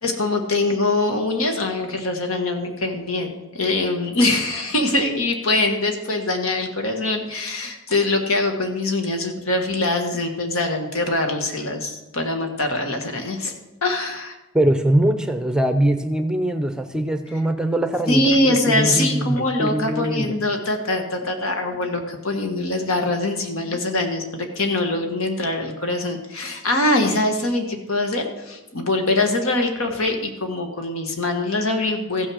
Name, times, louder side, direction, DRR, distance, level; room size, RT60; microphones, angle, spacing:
voice 1, 0.0-13.5 13.8-14.3 18.1-32.3, left 2 dB, 70° left, 4 dB, 1.5 m, -23 dB
voice 2, 14.5-20.3, right 1 dB, 5° right, 7 dB, 0.7 m, -22 dB
15.0 x 6.3 x 6.4 m, 0.99 s
head